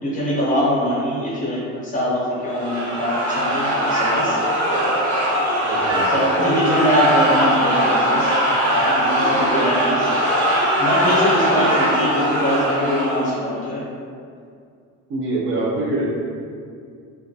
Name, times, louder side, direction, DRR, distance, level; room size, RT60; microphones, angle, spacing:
voice 1, 0.0-4.4 6.0-8.3 8.6-10.1 10.8-13.8, equal, 25° left, -6 dB, 0.5 m, -23 dB
sound 1, 2.5-13.4, equal, 70° right, 0.8 m, -20 dB
voice 2, 5.6-6.1 15.1-16.1, right 2 dB, 40° right, -4 dB, 0.4 m, -24 dB
2.4 x 2.2 x 2.6 m, 2.3 s
cardioid pair, 170°, 30 cm